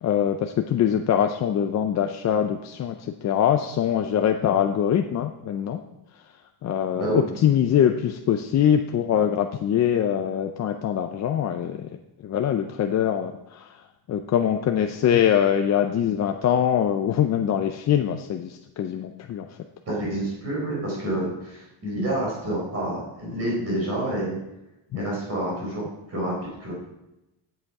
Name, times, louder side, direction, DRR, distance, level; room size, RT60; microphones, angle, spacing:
voice 1, 0.0-5.8 6.6-12.0 12.2-13.8 14.1-19.6 24.9-25.0, left 9 dB, 35° left, 5 dB, 0.5 m, -23 dB
voice 2, 6.9-7.3 19.9-24.4 24.9-25.8 26.1-26.3 26.6-26.7, right 1 dB, 30° right, -4 dB, 4.2 m, -28 dB
11.5 x 7.9 x 4.7 m, 0.94 s
cardioid pair, 160°, 50 cm